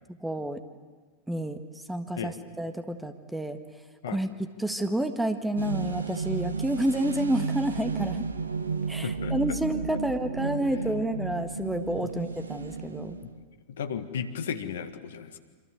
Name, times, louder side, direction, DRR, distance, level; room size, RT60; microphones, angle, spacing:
voice 1, 0.2-0.6 1.3-1.6 1.9-3.6 4.1-8.3 8.9-13.2, right 1 dB, 5° right, 9 dB, 1.7 m, -29 dB
sound 1, 5.6-13.5, right 5 dB, 75° right, 1.2 m, -33 dB
voice 2, 9.0-9.6 12.0-12.1 13.7-15.4, left 7 dB, 60° left, 9 dB, 1.8 m, -34 dB
27.0 x 26.5 x 8.1 m, 1.4 s
figure-of-eight pair, 90°, 0 cm